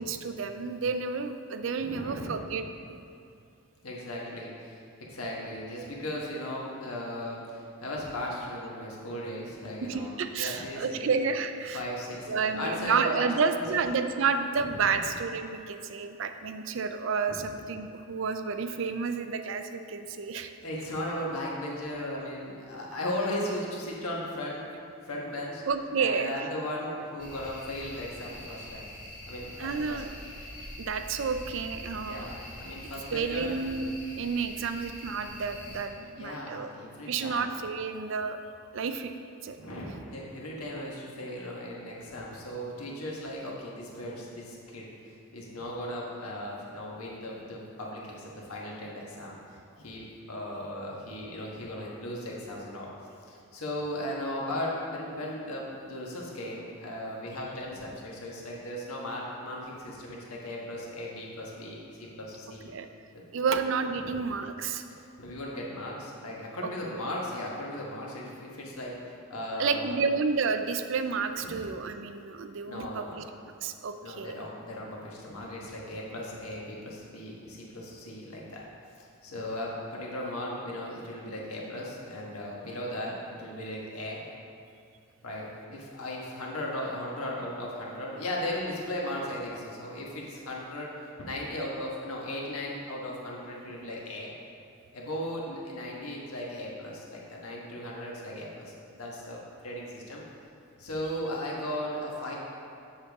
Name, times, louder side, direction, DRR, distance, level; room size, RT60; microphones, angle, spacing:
voice 1, 0.0-2.6 9.8-11.8 12.3-20.5 25.7-26.5 29.6-30.1 30.8-32.3 33.1-36.7 37.1-38.4 38.7-39.1 39.4-39.6 62.7-62.9 63.3-64.8 66.9-67.0 69.6-73.2 73.6-74.4 77.4-77.5, right 5 dB, 60° right, 8 dB, 0.4 m, -30 dB
voice 2, 1.8-2.5 3.8-4.8 5.1-11.1 11.7-13.9 14.5-15.0 17.3-17.4 20.6-24.7 25.0-25.6 26.0-28.9 29.3-30.0 32.1-33.5 36.1-37.4 39.5-52.9 53.3-62.7 63.1-63.5 64.0-64.2 64.9-69.8 71.4-71.6 72.6-73.3 74.0-78.6 79.0-84.2 85.2-94.3 94.9-100.2 100.8-102.4, left 1 dB, 90° left, -3 dB, 1.4 m, -37 dB
sound 1, 27.2-35.8, left 1 dB, 35° left, 1.5 m, -44 dB
7.3 x 6.7 x 3.5 m, 2.5 s
head